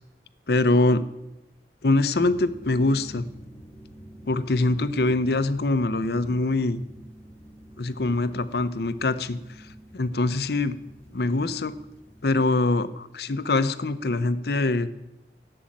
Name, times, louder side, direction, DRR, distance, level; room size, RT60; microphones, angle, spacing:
voice 1, 0.5-1.0 1.8-3.3 4.3-6.8 7.8-9.4 9.9-10.7 11.1-11.7 12.2-14.9, left 2 dB, 65° left, 13 dB, 0.7 m, -23 dB
sound 1, 2.1-12.4, right 1 dB, 10° left, 2.0 m, -48 dB
11.5 x 7.7 x 8.7 m, 0.94 s
head